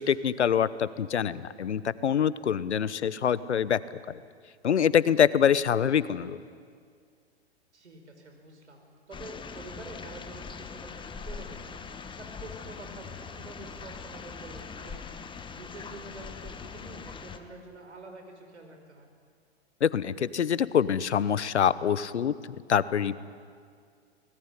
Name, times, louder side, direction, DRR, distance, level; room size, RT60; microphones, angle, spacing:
voice 1, 0.0-3.8 4.1-4.2 4.6-6.4 19.8-22.3 22.7-23.2, left 8 dB, 85° left, 17 dB, 1.0 m, -25 dB
voice 2, 7.7-11.7 12.2-15.1 15.6-19.1, right 2 dB, 90° right, 4 dB, 5.3 m, -47 dB
sound 1, 9.1-17.4, left 5 dB, 15° left, 1.4 m, -42 dB
24.5 x 19.0 x 9.9 m, 2.1 s
hypercardioid pair, 110°, 33 cm